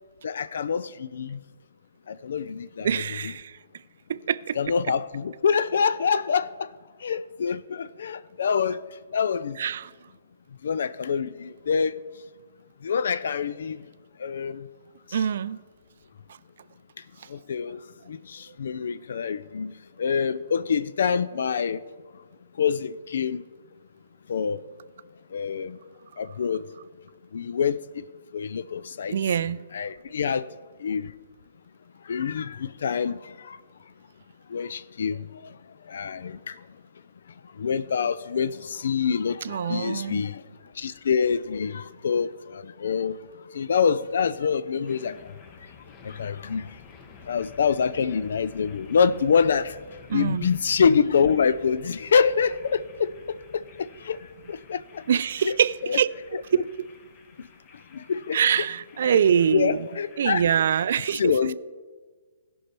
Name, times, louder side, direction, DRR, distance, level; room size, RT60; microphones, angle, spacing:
voice 1, 0.2-1.4 2.1-3.3 4.6-6.7 7.0-8.8 9.1-9.6 10.6-12.0 12.8-13.8 14.2-14.7 15.1-15.2 17.3-17.8 18.1-19.7 20.0-21.8 22.6-23.4 24.3-24.6 25.3-25.8 26.2-26.7 27.3-28.0 28.3-29.2 29.7-30.5 30.8-31.1 32.1-33.6 34.5-35.5 35.9-36.6 37.6-40.4 40.8-43.2 43.5-45.3 46.0-46.7 47.3-49.8 50.1-54.2 54.5-55.0 55.4-55.5 55.8-56.0 56.3-56.6 57.9-58.4 59.0-59.2 59.5-60.5 61.2-61.6, left 6 dB, 65° left, 0.3 m, -26 dB
voice 2, 2.8-3.6 4.1-4.6 9.6-9.9 15.1-15.6 29.1-29.6 39.4-40.2 50.1-50.5 55.1-56.1 56.5-56.9 58.3-59.8 60.2-61.4, right 8 dB, 60° right, 0.3 m, -24 dB
sound 1, 44.9-60.9, left 5 dB, 30° left, 1.0 m, -51 dB
16.5 x 5.5 x 4.4 m
hypercardioid pair, 130°, 0 cm